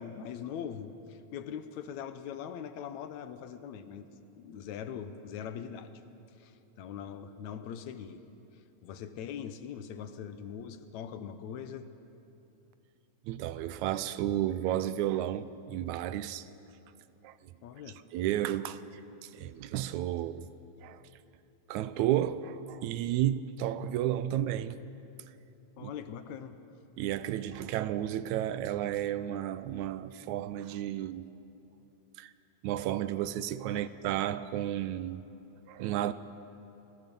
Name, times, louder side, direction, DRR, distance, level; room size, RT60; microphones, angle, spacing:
voice 1, 0.0-4.1 4.3-5.9 6.4-8.2 8.8-11.9 17.6-18.0 25.8-26.6 33.8-33.9, left 8 dB, 75° left, 2.2 m, -41 dB
voice 2, 13.3-16.5 17.2-17.4 18.1-18.8 19.2-20.5 20.8-21.0 21.7-24.8 25.8-25.9 27.0-31.3 32.2-32.3 32.6-35.2 35.7-36.1, right 12 dB, 80° right, 2.0 m, -32 dB
29.5 x 21.0 x 5.4 m
omnidirectional pair, 3.4 m